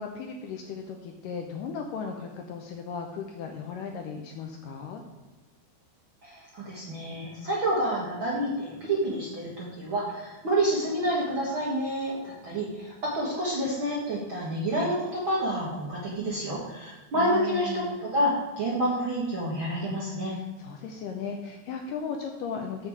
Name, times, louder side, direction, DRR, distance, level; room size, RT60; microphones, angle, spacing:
voice 1, 0.0-5.0 17.1-18.0 20.2-22.9, left 6 dB, 80° left, 3 dB, 2.0 m, -36 dB
voice 2, 6.2-20.4, right 1 dB, 50° right, -6 dB, 1.5 m, -28 dB
7.6 x 7.0 x 4.7 m, 1.2 s
omnidirectional pair, 4.4 m